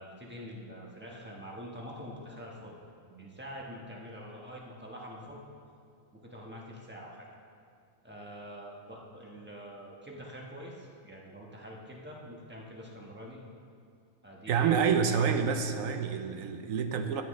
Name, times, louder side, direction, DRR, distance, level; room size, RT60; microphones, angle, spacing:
voice 1, 0.0-2.7 3.1-5.4 6.1-7.3 8.0-13.4 14.2-15.2, equal, 10° right, -2 dB, 1.2 m, -45 dB
voice 2, 14.5-17.2, right 6 dB, 85° right, 6 dB, 1.1 m, -28 dB
13.5 x 8.7 x 3.2 m, 2.3 s
omnidirectional pair, 1.4 m